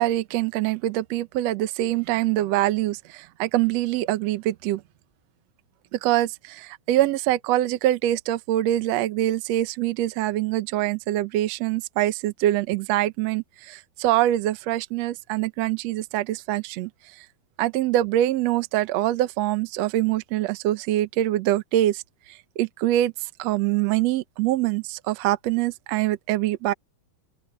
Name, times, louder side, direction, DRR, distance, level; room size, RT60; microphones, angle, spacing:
voice 1, 0.0-4.8 5.9-16.9 17.6-22.0 22.6-23.1 23.4-26.7, right 14 dB, 90° right, 1.4 m, -24 dB
open air
omnidirectional pair, 4.3 m